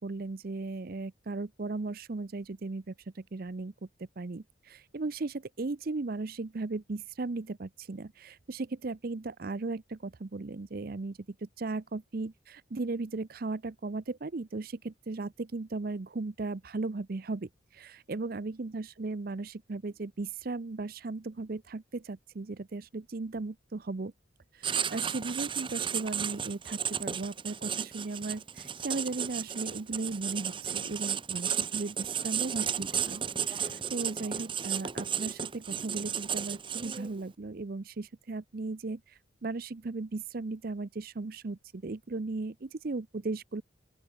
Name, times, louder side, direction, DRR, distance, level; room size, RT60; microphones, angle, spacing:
voice 1, 0.0-3.7 4.2-24.1 24.5-39.0 39.4-43.6, right 3 dB, 50° right, 0.6 m, -36 dB
Writing, 24.6-37.2, right 8 dB, 25° right, 1.0 m, -34 dB
open air
head